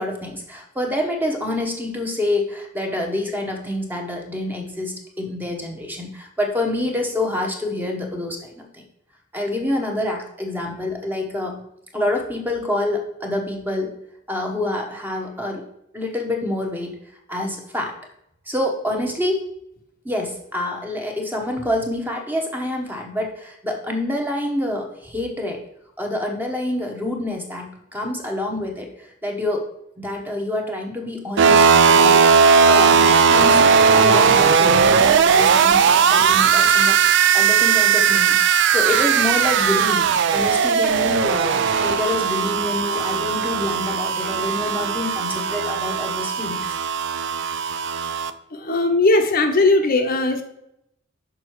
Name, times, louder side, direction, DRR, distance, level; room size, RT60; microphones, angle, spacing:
voice 1, 0.0-8.8 9.3-11.6 11.9-13.9 14.3-15.6 15.9-17.0 17.3-18.0 18.5-19.4 20.0-25.6 26.0-29.6 30.0-32.2 32.7-46.8, left 1 dB, 10° right, 2 dB, 1.0 m, -27 dB
sound 1, 31.4-48.3, right 6 dB, 60° right, 0.4 m, -17 dB
voice 2, 48.5-50.4, left 2 dB, 45° left, 5 dB, 0.7 m, -18 dB
6.3 x 5.4 x 4.6 m, 0.77 s
head